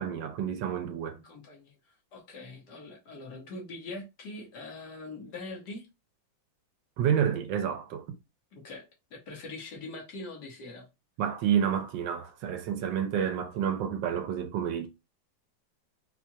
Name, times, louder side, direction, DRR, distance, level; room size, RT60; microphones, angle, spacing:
voice 1, 0.0-1.2 7.0-8.0 11.2-14.9, right 8 dB, 75° right, 1.2 m, -29 dB
voice 2, 1.1-1.7 2.1-5.9 8.5-8.8 9.1-10.9, left 2 dB, 60° left, 1.5 m, -42 dB
4.4 x 2.4 x 2.7 m
omnidirectional pair, 2.1 m